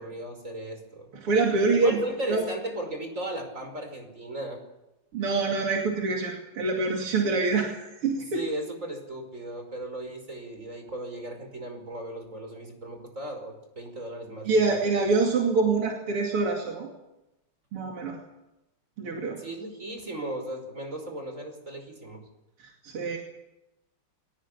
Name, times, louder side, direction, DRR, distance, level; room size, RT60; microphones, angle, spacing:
voice 1, 0.0-1.1 1.7-4.6 8.3-15.0 19.4-22.2, right 1 dB, 35° right, 4 dB, 5.6 m, -36 dB
voice 2, 1.2-2.4 5.1-7.8 8.0-8.4 14.5-16.9 17.7-18.2 19.0-19.4 22.8-23.2, right 3 dB, 80° right, 0 dB, 3.5 m, -25 dB
22.5 x 18.5 x 8.5 m, 0.94 s
omnidirectional pair, 2.4 m